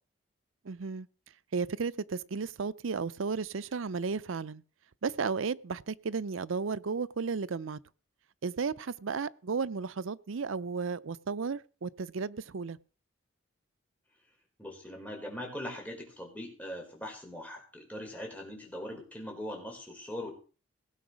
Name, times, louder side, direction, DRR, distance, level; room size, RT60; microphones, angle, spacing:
voice 1, 0.6-1.1 1.5-4.6 5.0-7.8 8.4-12.8, right 5 dB, 70° right, 0.6 m, -34 dB
voice 2, 14.6-20.4, left 1 dB, 5° left, 4.8 m, -41 dB
17.5 x 6.9 x 6.3 m
head